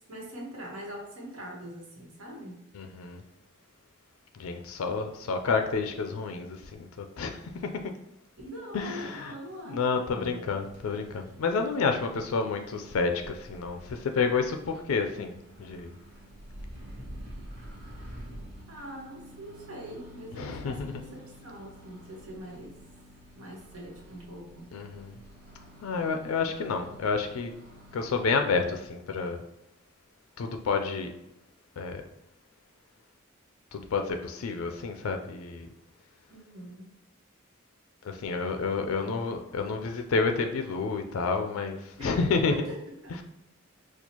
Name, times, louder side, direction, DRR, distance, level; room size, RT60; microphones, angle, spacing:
voice 1, 0.1-2.6 8.4-10.4 18.7-22.8 23.3-24.8 36.3-36.9 39.0-39.2 42.0-43.2, equal, 90° right, -2 dB, 1.1 m, -43 dB
voice 2, 2.7-3.2 4.4-7.7 8.7-9.3 9.7-15.3 15.6-15.9 20.4-21.0 24.7-25.2 25.8-27.5 27.9-29.4 30.4-31.1 31.8-32.0 33.7-35.7 38.0-42.5, left 4 dB, 85° left, 5 dB, 0.4 m, -29 dB
Microwave oven, 10.6-28.9, equal, 55° right, 0.9 m, -49 dB
4.3 x 2.3 x 2.8 m, 0.86 s
head